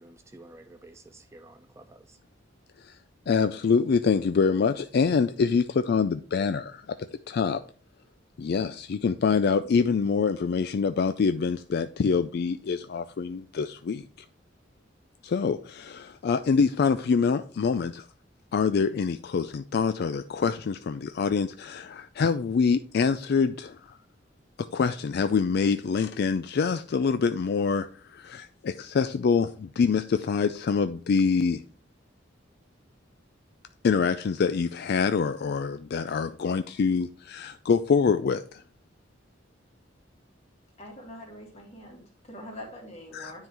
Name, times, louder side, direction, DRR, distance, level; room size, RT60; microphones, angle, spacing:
voice 1, 0.0-2.2, right 2 dB, 15° right, 0.4 m, -51 dB
voice 2, 3.3-6.8 7.3-7.6 8.4-14.0 15.2-18.0 18.5-24.0 24.7-31.6 33.8-38.6 43.1-43.3, left 5 dB, 60° left, 0.4 m, -25 dB
voice 3, 40.8-43.5, left 1 dB, 35° left, 2.2 m, -44 dB
9.6 x 3.8 x 4.5 m
head